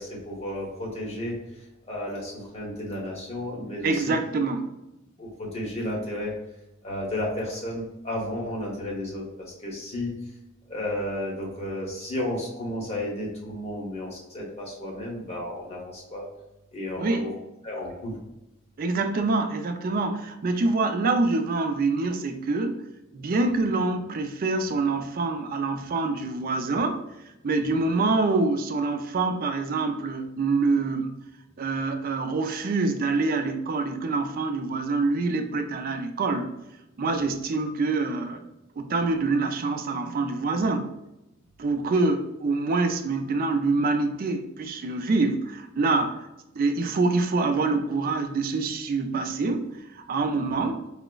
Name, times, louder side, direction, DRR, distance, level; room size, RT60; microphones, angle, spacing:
voice 1, 0.0-1.3 1.9-4.1 5.2-6.3 6.8-10.1 10.7-16.3 16.7-17.3 17.6-18.2, left 1 dB, 30° left, -3 dB, 1.0 m, -32 dB
voice 2, 3.8-4.7 17.0-17.3 18.8-22.8 23.1-27.0 27.4-31.1 31.6-36.5 37.0-38.4 38.8-40.9 41.6-46.3 46.6-50.8, right 3 dB, 45° right, 6 dB, 0.4 m, -25 dB
4.8 x 2.0 x 2.2 m, 0.94 s
head